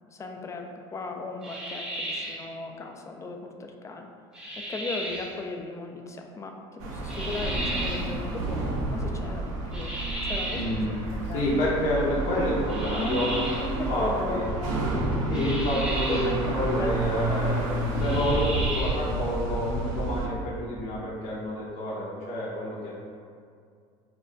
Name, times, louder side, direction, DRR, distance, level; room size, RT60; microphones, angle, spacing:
voice 1, 0.1-4.1 4.6-8.6 8.9-9.9 10.2-11.5 12.9-14.9 15.3-17.1, left 3 dB, 20° left, 3 dB, 0.3 m, -36 dB
sound 1, 1.4-2.5 4.3-5.3 7.1-8.1 9.7-10.8 12.7-13.7 15.3-16.4 18.0-19.1, right 1 dB, 5° right, 0.7 m, -34 dB
sound 2, 6.8-20.3, right 2 dB, 70° right, 0.5 m, -30 dB
voice 2, 10.5-10.9 11.3-14.4 15.3-22.9, equal, 55° left, -6 dB, 0.6 m, -29 dB
2.2 x 2.2 x 3.8 m, 2.2 s
supercardioid pair, 95°, 15 cm